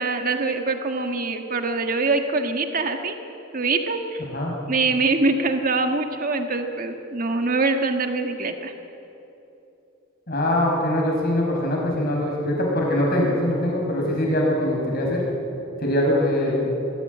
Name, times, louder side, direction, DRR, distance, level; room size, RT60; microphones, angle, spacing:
voice 1, 0.0-3.2 3.5-4.2 4.7-8.7, right 3 dB, 45° right, 5 dB, 1.5 m, -24 dB
voice 2, 10.3-15.2 15.8-16.7, left 1 dB, 50° left, -1 dB, 5.5 m, -22 dB
21.5 x 14.5 x 9.6 m, 2.9 s
head